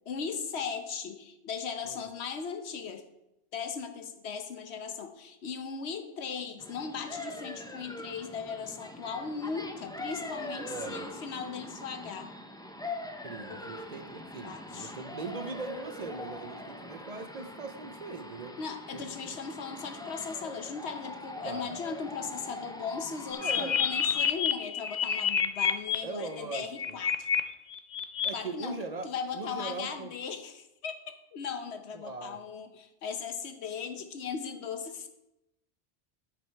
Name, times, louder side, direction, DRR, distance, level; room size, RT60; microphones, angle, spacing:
voice 1, 0.1-3.0 3.5-12.3 13.5-13.6 14.4-14.9 18.6-27.3 28.3-28.8 29.0-35.1, left 6 dB, 85° left, 8 dB, 1.1 m, -38 dB
sound 1, 6.6-24.2, left 1 dB, 5° left, 0.4 m, -43 dB
voice 2, 10.6-11.1 13.2-18.6 18.9-19.4 21.4-21.7 23.4-23.8 26.0-26.7 28.2-29.1 29.3-30.1 31.9-32.4, right 3 dB, 45° right, 7 dB, 0.7 m, -40 dB
sound 2, 23.3-25.9 26.6-27.4 27.7-28.3, left 8 dB, 55° left, 0.6 m, -28 dB
9.5 x 5.2 x 4.5 m, 0.89 s
omnidirectional pair, 1.1 m